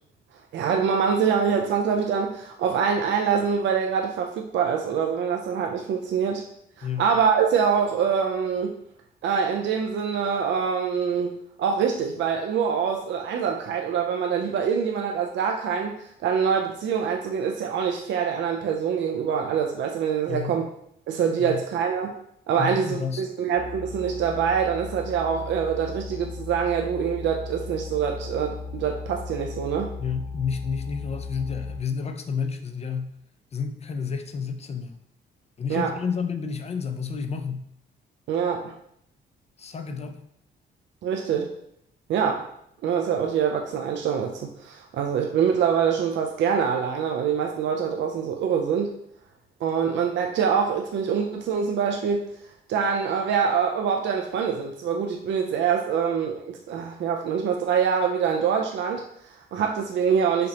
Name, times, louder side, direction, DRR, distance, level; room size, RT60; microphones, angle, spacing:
voice 1, 0.5-6.4 6.8-8.7 9.2-20.6 21.1-22.1 22.5-29.9 35.7-35.9 38.3-38.7 41.0-41.5 42.1-42.5 42.8-48.9 49.6-52.2 52.7-60.5, right 7 dB, 65° right, 2 dB, 0.5 m, -25 dB
voice 2, 20.3-20.6 21.4-21.6 22.6-23.3 30.0-33.1 33.5-35.0 35.6-37.7 39.6-40.2, left 6 dB, 30° left, 7 dB, 0.5 m, -30 dB
sound 1, 23.5-31.8, left 4 dB, 75° left, 0.6 m, -37 dB
5.0 x 2.8 x 2.8 m, 0.72 s
cardioid pair, 90°, 20 cm